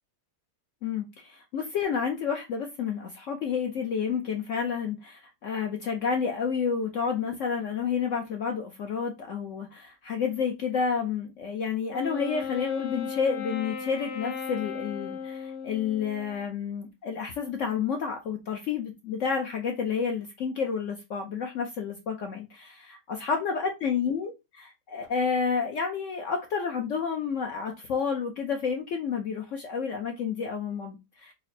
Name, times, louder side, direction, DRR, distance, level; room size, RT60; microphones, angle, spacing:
voice 1, 0.8-31.3, left 6 dB, 65° left, 0.8 m, -30 dB
Wind instrument woodwind instrument, 11.9-16.4, left 6 dB, 85° left, 1.3 m, -36 dB
4.1 x 2.0 x 4.0 m
omnidirectional pair, 1.8 m